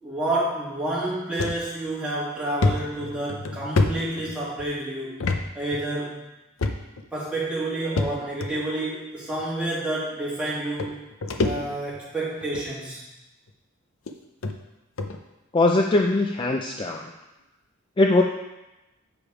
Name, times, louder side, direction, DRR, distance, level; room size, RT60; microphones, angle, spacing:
voice 1, 0.0-5.2 5.5-6.3 7.1-11.0 11.4-13.0, right 1 dB, 5° right, -8 dB, 2.2 m, -29 dB
sound 1, 1.4-1.6 2.0-2.1 2.6-4.7 5.2-5.4 5.7-5.8 6.6-7.1 8.0-8.5 9.4-9.5 10.5-10.6 10.8-12.0 12.4-12.7 13.5-13.6 14.1-14.2 14.4-14.5 15.0-15.2, left 3 dB, 70° left, 0.6 m, -26 dB
voice 2, 15.5-17.1 18.0-18.2, left 2 dB, 25° left, 2 dB, 0.4 m, -21 dB
7.1 x 5.0 x 4.7 m, 1.0 s
head